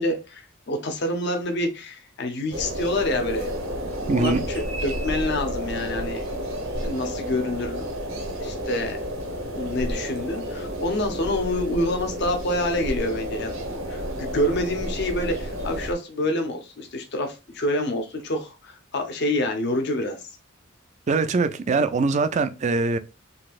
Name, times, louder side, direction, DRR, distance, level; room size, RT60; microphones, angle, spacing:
voice 1, 0.0-3.5 4.1-6.2 6.8-7.9 8.4-9.0 9.5-13.5 13.9-20.2, left 1 dB, 55° left, 0.8 m, -27 dB
sound 1, 2.5-15.9, equal, 80° right, 1.0 m, -31 dB
voice 2, 4.1-4.4 21.1-23.0, right 4 dB, 35° right, 0.3 m, -22 dB
3.9 x 2.8 x 2.4 m
head